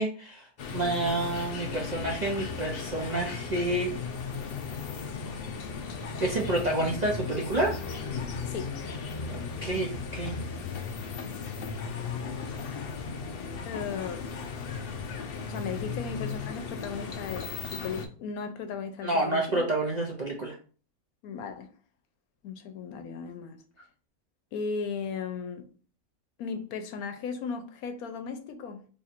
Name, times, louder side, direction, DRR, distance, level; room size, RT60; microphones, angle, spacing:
voice 1, 0.0-3.9 6.2-7.9 9.3-10.4 19.0-20.5, right 2 dB, 55° right, 0.4 m, -29 dB
sound 1, 0.6-18.1, left 5 dB, 65° left, 0.5 m, -36 dB
voice 2, 13.6-14.3 15.5-19.6 21.2-21.7 22.4-23.6 24.5-25.7 26.4-28.9, left 5 dB, 85° left, 1.1 m, -36 dB
3.1 x 2.4 x 4.2 m
omnidirectional pair, 1.5 m